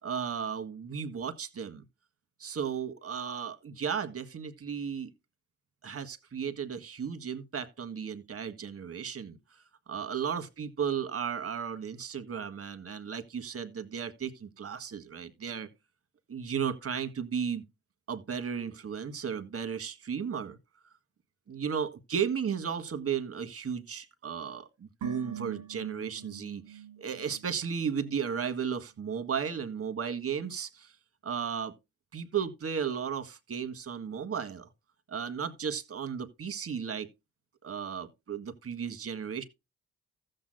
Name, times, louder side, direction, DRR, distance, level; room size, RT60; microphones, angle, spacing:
voice 1, 0.0-1.8 2.4-5.1 5.8-9.4 9.9-15.7 16.3-17.6 18.1-20.6 21.5-30.9 31.2-31.8 32.1-34.7 35.1-37.1 37.6-39.4, right 7 dB, 50° right, 1.5 m, -34 dB
sound 1, 25.0-28.3 28.6-28.7, right 10 dB, 70° right, 1.3 m, -45 dB
15.0 x 7.8 x 2.2 m
hypercardioid pair, 45°, 31 cm